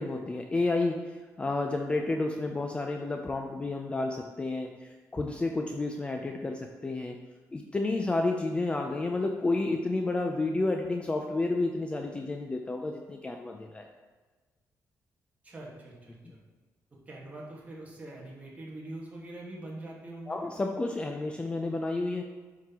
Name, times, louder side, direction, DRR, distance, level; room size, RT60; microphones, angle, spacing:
voice 1, 0.0-7.2 7.5-13.9 20.3-22.2, left 2 dB, 15° left, 3 dB, 0.3 m, -31 dB
voice 2, 15.4-16.4 17.1-20.4, right 1 dB, 25° right, -4 dB, 1.4 m, -43 dB
9.0 x 3.9 x 2.9 m, 1.3 s
cardioid pair, 135°, 6 cm